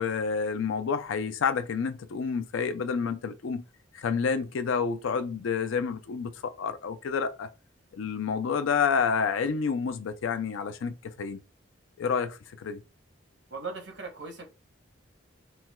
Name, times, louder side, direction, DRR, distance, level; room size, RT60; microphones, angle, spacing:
voice 1, 0.0-3.6 3.9-7.5 7.9-11.4 12.0-12.8, left 6 dB, 85° left, 0.4 m, -29 dB
voice 2, 13.5-14.4, right 4 dB, 65° right, 0.9 m, -38 dB
4.3 x 2.1 x 2.2 m
head